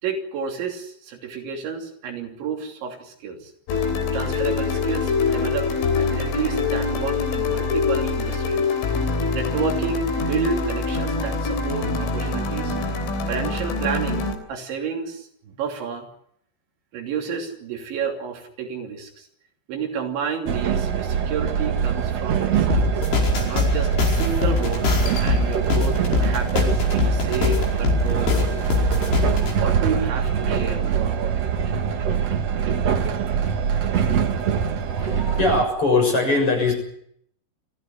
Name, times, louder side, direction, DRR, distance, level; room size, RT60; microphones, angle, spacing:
voice 1, 0.0-3.5 4.1-8.7 9.3-12.8 13.3-16.1 16.9-19.3 19.7-22.9 23.4-24.9 25.2-28.6 29.6-31.7, right 6 dB, 75° right, 2 dB, 5.3 m, -30 dB
sound 1, 3.7-14.4, left 4 dB, 85° left, 5.9 m, -24 dB
Train, 20.5-35.6, right 7 dB, 90° right, 1.4 m, -23 dB
sound 2, 22.7-29.5, left 5 dB, 65° left, 7.1 m, -23 dB
voice 2, 34.9-36.7, left 3 dB, 30° left, 3 dB, 7.6 m, -21 dB
25.0 x 15.5 x 9.9 m, 0.70 s
omnidirectional pair, 5.4 m